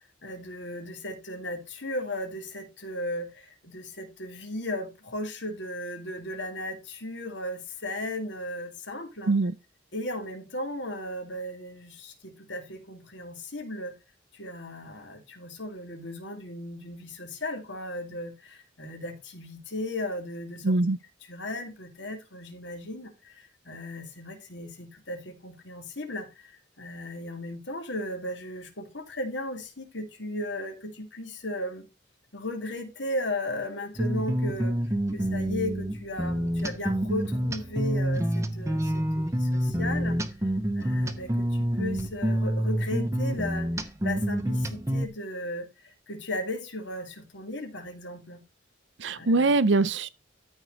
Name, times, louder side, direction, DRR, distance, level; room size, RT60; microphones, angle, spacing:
voice 1, 0.0-9.3 9.9-13.9 14.3-20.7 21.3-31.9 32.3-34.8 35.1-40.2 40.7-43.7 44.0-45.7 46.1-48.4 49.1-49.5, left 1 dB, 70° left, 2.6 m, -36 dB
voice 2, 20.6-21.0 49.0-50.1, right 3 dB, 70° right, 0.6 m, -22 dB
sound 1, 34.0-45.1, equal, 15° right, 0.8 m, -28 dB
13.5 x 4.7 x 4.0 m
head